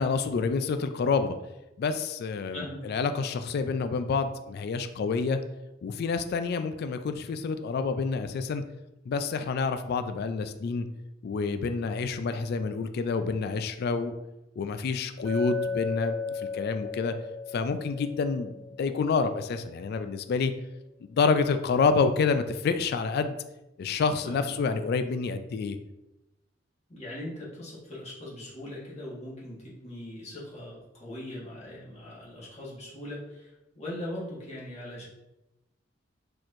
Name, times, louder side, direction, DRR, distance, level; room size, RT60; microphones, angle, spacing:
voice 1, 0.0-1.4 1.8-5.4 5.8-8.6 9.1-10.9 11.2-14.1 14.6-17.1 17.5-20.5 21.1-23.3 23.8-25.8, left 4 dB, 55° left, 9 dB, 0.3 m, -28 dB
voice 2, 2.5-3.2 24.2-24.5 26.9-33.5 33.7-35.1, left 1 dB, 35° left, -6 dB, 1.5 m, -40 dB
Chink clink, 15.2-19.3, left 4 dB, 5° left, 0.8 m, -35 dB
4.5 x 4.2 x 2.5 m, 0.96 s
head